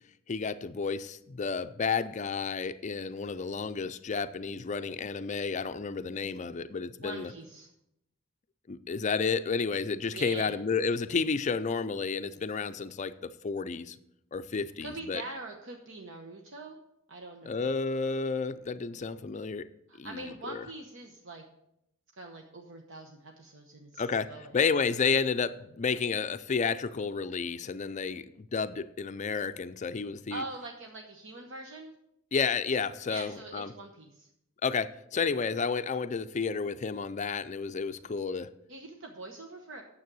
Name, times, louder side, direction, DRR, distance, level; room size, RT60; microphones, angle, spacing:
voice 1, 0.3-7.3 8.7-14.0 14.3-15.2 17.5-19.7 20.0-20.6 24.0-30.4 32.3-33.7 34.6-38.5, left 5 dB, 35° left, 12 dB, 0.4 m, -31 dB
voice 2, 7.0-7.7 10.1-10.6 14.5-16.8 17.1-17.7 19.9-21.4 22.1-24.6 30.3-31.9 33.1-34.3 38.7-39.8, right 2 dB, 65° right, 2 dB, 1.0 m, -43 dB
9.4 x 7.3 x 6.1 m, 0.81 s
head